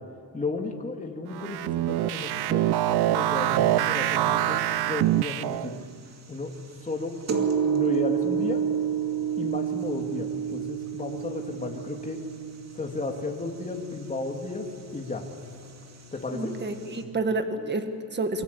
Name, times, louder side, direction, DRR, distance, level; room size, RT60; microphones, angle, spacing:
voice 1, 0.3-4.6 4.9-5.7 6.3-6.5 6.8-7.1 7.6-8.6 9.4-12.2 12.7-14.7 14.9-15.2 16.1-16.6, left 3 dB, 20° left, 2 dB, 2.6 m, -33 dB
sound 1, 1.3-5.8, right 14 dB, 80° right, 0.6 m, -25 dB
sound 2, 3.5-17.0, right 7 dB, 45° right, 2.5 m, -32 dB
voice 2, 16.3-18.4, right 2 dB, 25° right, 7 dB, 1.7 m, -29 dB
28.0 x 23.0 x 8.5 m, 2.6 s
cardioid pair, 140°, 38 cm